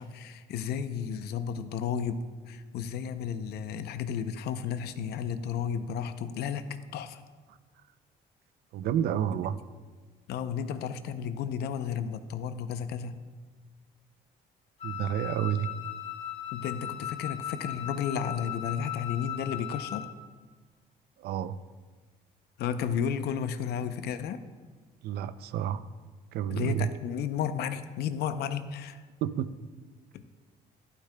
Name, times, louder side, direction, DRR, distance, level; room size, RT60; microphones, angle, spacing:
voice 1, 0.0-7.2 10.3-13.2 16.5-20.0 22.6-24.4 26.5-29.0 30.1-30.2, left 7 dB, 75° left, 0.6 m, -33 dB
voice 2, 8.7-9.6 14.8-15.7 21.2-21.6 25.0-25.8 26.3-26.9 29.2-29.5, right 10 dB, 70° right, 0.5 m, -30 dB
Wind instrument woodwind instrument, 14.8-20.1, left 11 dB, 40° left, 3.1 m, -38 dB
12.0 x 11.5 x 2.2 m
cardioid pair, 110°, 17 cm